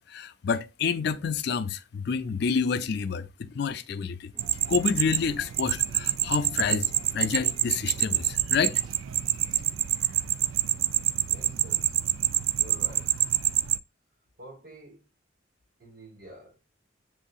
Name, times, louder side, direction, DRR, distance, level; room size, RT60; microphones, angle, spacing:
voice 1, 0.0-4.3 4.7-8.7, left 6 dB, 55° left, 0.4 m, -28 dB
sound 1, 4.3-9.7, right 2 dB, 20° right, 0.6 m, -53 dB
sound 2, 4.4-13.8, right 13 dB, 85° right, 0.3 m, -27 dB
voice 2, 11.3-12.0 12.6-13.2 14.4-15.1 15.8-16.6, right 1 dB, 50° right, 1.0 m, -48 dB
7.5 x 2.7 x 2.3 m
head